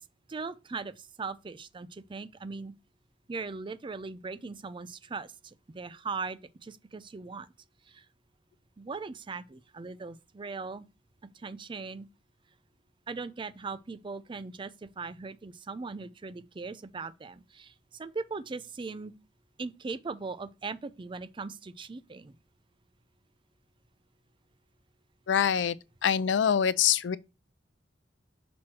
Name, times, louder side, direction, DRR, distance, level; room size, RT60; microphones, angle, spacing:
voice 1, 0.3-2.7 3.3-7.5 7.9-8.1 8.8-10.9 11.3-12.1 13.1-19.1 19.6-22.4, right 4 dB, 30° right, 0.4 m, -39 dB
voice 2, 25.3-25.7 26.0-27.2, left 8 dB, 80° left, 0.4 m, -24 dB
6.1 x 3.1 x 5.8 m
head